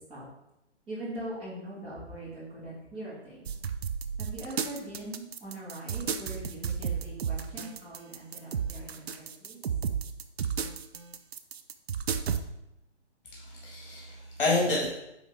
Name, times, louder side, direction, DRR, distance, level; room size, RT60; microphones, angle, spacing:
voice 1, 0.9-3.5 4.2-9.6, right 1 dB, 15° right, -8 dB, 2.1 m, -41 dB
sound 1, 3.5-12.4, right 7 dB, 60° right, 0.6 m, -33 dB
voice 2, 13.3-14.9, left 2 dB, 45° left, -4 dB, 2.1 m, -29 dB
9.2 x 3.6 x 3.6 m, 0.88 s
hypercardioid pair, 150°, 35 cm